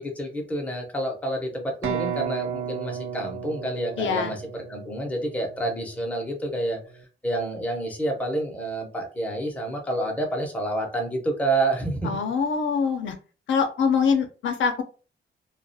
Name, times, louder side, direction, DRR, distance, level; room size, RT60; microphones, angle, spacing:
voice 1, 0.0-4.4 4.7-6.8 7.2-12.2, right 1 dB, 5° left, 1 dB, 0.6 m, -28 dB
sound 1, 1.8-5.6, right 8 dB, 85° right, 0.5 m, -33 dB
voice 2, 4.0-4.3 12.0-13.1 13.5-14.8, left 6 dB, 70° left, 5 dB, 0.5 m, -24 dB
2.3 x 2.1 x 2.6 m, 0.35 s
wide cardioid pair, 150°, 21 cm